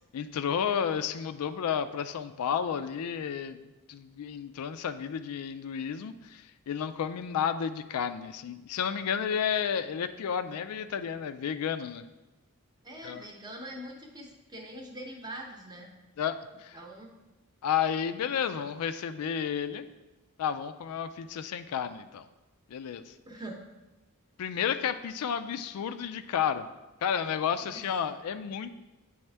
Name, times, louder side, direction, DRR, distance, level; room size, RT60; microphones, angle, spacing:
voice 1, 0.1-3.6 3.9-12.0 13.0-13.2 16.2-16.8 17.6-19.9 20.4-22.3 22.7-23.1 24.4-26.7 27.0-28.7, left 8 dB, 85° left, 11 dB, 0.3 m, -31 dB
voice 2, 12.8-15.9 16.7-17.1 23.3-23.6 27.7-27.8, right 1 dB, 20° right, 1 dB, 0.7 m, -43 dB
8.6 x 3.5 x 3.3 m, 1.1 s
head